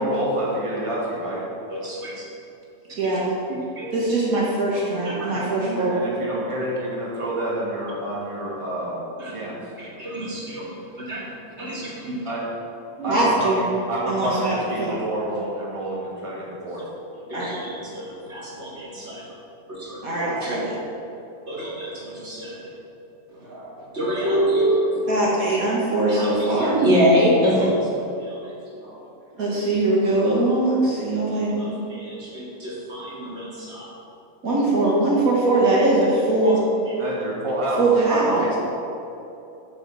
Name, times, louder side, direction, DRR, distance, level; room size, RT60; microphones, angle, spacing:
voice 1, 0.0-1.4 5.8-9.7 12.2-12.5 13.0-16.8 37.0-38.6, right 1 dB, 20° right, -6 dB, 2.0 m, -28 dB
voice 2, 1.7-2.2 3.0-3.2 3.5-3.9 5.0-5.7 9.2-9.4 9.8-11.3 11.6-12.3 13.0-13.1 16.8-16.9 17.3-19.3 19.7-20.6 21.5-22.7 23.3-23.5 23.9-25.2 26.1-28.5 30.0-30.1 30.5-30.6 31.6-33.9 34.8-34.9 36.4-36.5 36.9-37.0 38.2-38.3, equal, 45° right, -5 dB, 2.7 m, -26 dB
voice 3, 2.9-3.3 3.9-6.0 13.1-13.6 14.1-15.0 17.3-17.5 20.0-20.8 23.4-23.7 25.1-26.8 28.8-29.0 29.3-31.7 34.4-36.6 37.8-38.6, right 2 dB, 70° right, -6 dB, 2.3 m, -21 dB
7.7 x 7.5 x 7.6 m, 2.9 s
omnidirectional pair, 1.6 m